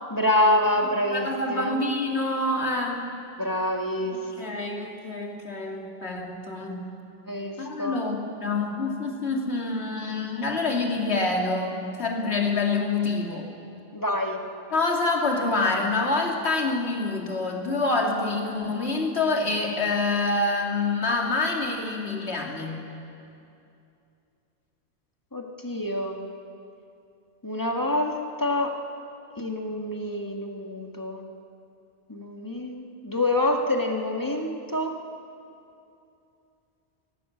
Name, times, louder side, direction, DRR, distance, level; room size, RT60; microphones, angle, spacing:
voice 1, 0.1-1.8 3.4-4.3 7.3-8.0 13.9-14.4 25.3-26.2 27.4-28.8 29.4-31.2 32.1-35.0, left 1 dB, 15° left, 2 dB, 1.7 m, -27 dB
voice 2, 1.1-3.1 4.4-6.9 7.6-13.5 14.7-22.8, left 3 dB, 70° left, 1 dB, 2.7 m, -26 dB
18.5 x 18.0 x 8.5 m, 2.6 s
omnidirectional pair, 1.2 m